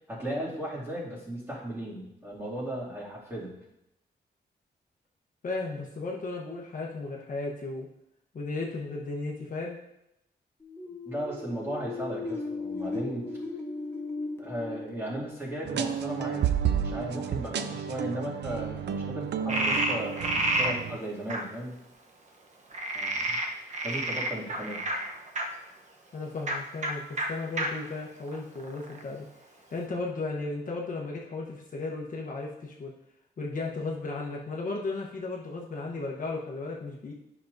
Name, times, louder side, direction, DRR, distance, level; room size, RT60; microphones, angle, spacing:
voice 1, 0.1-3.5 11.0-13.2 14.4-21.8 22.9-23.4 23.8-24.8, right 1 dB, 15° right, -7 dB, 2.4 m, -36 dB
voice 2, 5.4-7.9 8.3-9.8 26.1-29.3 29.7-32.9 33.4-37.1, left 3 dB, 50° left, -2 dB, 1.0 m, -35 dB
sound 1, 10.6-16.3, left 3 dB, 15° left, 0.9 m, -37 dB
sound 2, 15.6-21.0, right 8 dB, 80° right, 0.5 m, -31 dB
Frog, 19.5-20.7 21.3-21.4 22.7-25.4 26.4-26.6 26.8-26.9 27.2-27.3 27.6-27.7 28.3-29.0, right 1 dB, 45° right, 0.9 m, -29 dB
10.0 x 6.0 x 2.6 m, 0.84 s
wide cardioid pair, 135°, 18 cm